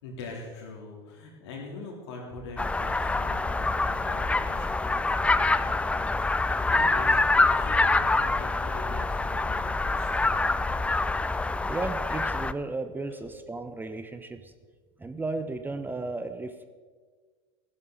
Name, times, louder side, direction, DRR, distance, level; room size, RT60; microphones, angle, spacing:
voice 1, 0.0-10.6, left 3 dB, 70° left, -1 dB, 3.8 m, -43 dB
sound 1, 2.6-12.5, left 3 dB, 10° left, 0.4 m, -25 dB
voice 2, 11.6-14.5 15.0-16.6, right 3 dB, 15° right, 9 dB, 0.9 m, -34 dB
15.5 x 11.0 x 4.1 m, 1.5 s
hypercardioid pair, 80°, 15 cm